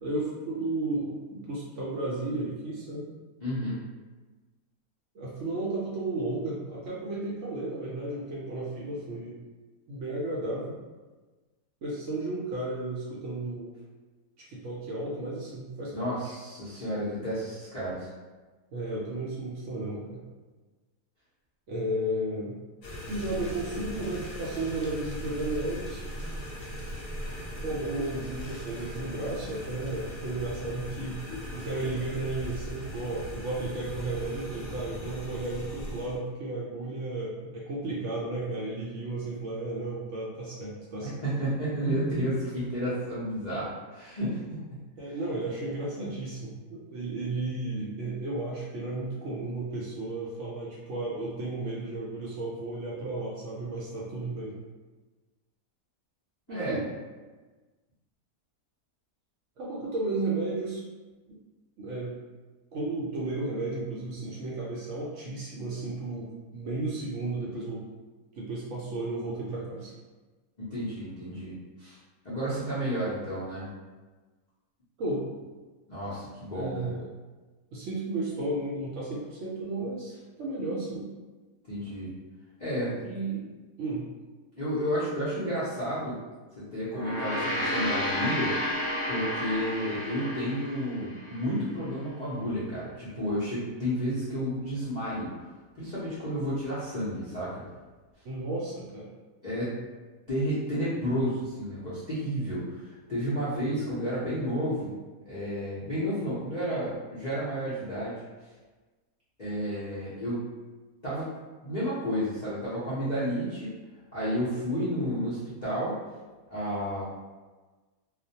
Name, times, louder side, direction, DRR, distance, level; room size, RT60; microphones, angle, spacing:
voice 1, 0.0-3.1 5.1-9.4 9.9-10.8 11.8-13.7 14.4-16.2 18.7-20.2 21.7-22.5 23.1-26.0 27.6-31.2 31.5-41.2 45.0-54.5 56.5-56.9 59.6-60.8 61.3-61.4 61.8-62.2 62.7-67.8 68.3-69.9 75.0-75.2 76.5-77.0 77.7-80.1 80.4-81.1 83.0-83.5 83.8-84.1 98.2-99.1, right 2 dB, 65° right, -5 dB, 0.8 m, -33 dB
voice 2, 3.4-3.8 15.9-18.1 41.0-44.6 56.5-56.8 70.6-72.0 72.2-73.7 75.9-76.7 81.7-82.1 82.6-82.9 84.6-86.2 86.6-88.5 89.1-95.3 95.8-97.6 99.4-99.7 100.3-104.9 105.3-108.1 109.4-110.4 111.0-111.3 111.6-113.7 114.1-116.0 116.5-117.0, equal, 55° left, -12 dB, 0.5 m, -31 dB
sound 1, 22.8-36.2, equal, 70° left, 0.9 m, -39 dB
Gong, 86.9-91.5, equal, 10° left, 1.1 m, -31 dB
2.4 x 2.1 x 2.7 m, 1.3 s
omnidirectional pair, 1.5 m